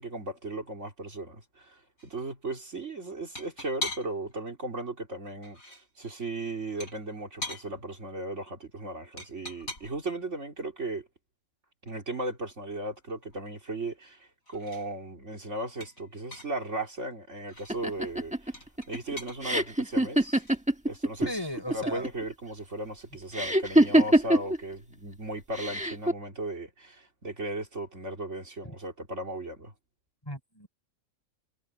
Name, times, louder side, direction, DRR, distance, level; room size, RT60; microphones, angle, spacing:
voice 1, 0.0-11.1 11.8-18.6 18.9-20.4 20.8-21.4 21.7-29.7, right 2 dB, 55° right, 3.6 m, -36 dB
sound 1, 2.0-2.1 3.4-4.3 5.3-5.9 6.8-7.7 9.2-10.1 11.9-12.0 12.3-12.4 12.7-14.2 14.5-14.9 15.8-16.6 17.4-17.8 18.5-19.4 20.2-20.6, left 2 dB, 75° left, 8.0 m, -41 dB
sound 2, 17.7-21.3 21.6-22.2 23.3-24.6 25.5-26.1, right 1 dB, 5° right, 1.2 m, -23 dB
voice 2, 21.2-22.1 30.2-30.7, left 1 dB, 15° left, 5.6 m, -36 dB
omnidirectional pair, 1.5 m